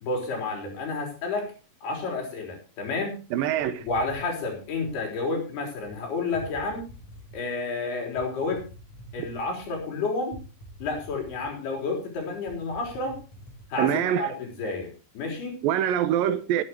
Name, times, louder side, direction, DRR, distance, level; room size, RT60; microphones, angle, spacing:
voice 1, 0.0-1.5 1.8-3.2 3.8-6.9 7.3-8.6 9.1-10.4 10.8-13.2 13.7-15.6, left 3 dB, 90° left, 5.7 m, -30 dB
voice 2, 3.3-3.9 13.8-14.3 15.6-16.6, right 10 dB, 75° right, 2.4 m, -24 dB
sound 1, 3.6-5.1 5.8-6.0 6.3-7.5 8.2-9.8 10.3-11.8 12.1-12.2 12.5-13.7, equal, 45° left, 4.9 m, -46 dB
19.0 x 9.6 x 3.0 m
omnidirectional pair, 4.4 m